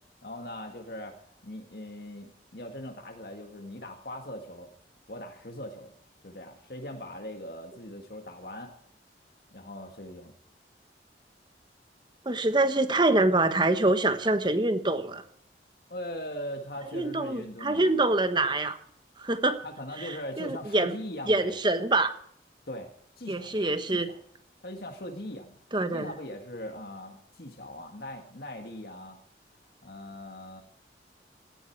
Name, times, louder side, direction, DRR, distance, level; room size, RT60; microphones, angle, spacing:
voice 1, 0.2-1.2 1.4-4.7 5.1-5.9 6.2-8.7 9.5-10.3 15.9-17.9 19.6-21.6 22.7-22.9 23.2-23.6 23.9-24.2 24.6-25.5 25.8-29.2 29.8-30.6, left 1 dB, 55° left, 4 dB, 1.9 m, -40 dB
voice 2, 12.2-15.2 16.9-18.8 19.2-19.6 20.0-20.9 21.3-22.1 23.3-24.1 25.7-26.1, right 2 dB, 25° right, 10 dB, 1.2 m, -25 dB
17.5 x 14.0 x 4.7 m, 0.64 s
head